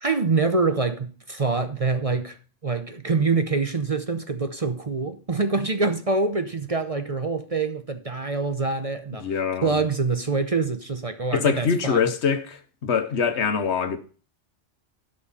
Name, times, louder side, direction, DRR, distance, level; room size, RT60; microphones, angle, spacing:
voice 1, 0.0-2.4 2.6-9.3 9.6-12.0, right 4 dB, 35° right, 0.8 m, -25 dB
voice 2, 9.2-9.8 11.3-14.0, left 6 dB, 70° left, 1.3 m, -24 dB
12.0 x 5.4 x 5.6 m
omnidirectional pair, 1.2 m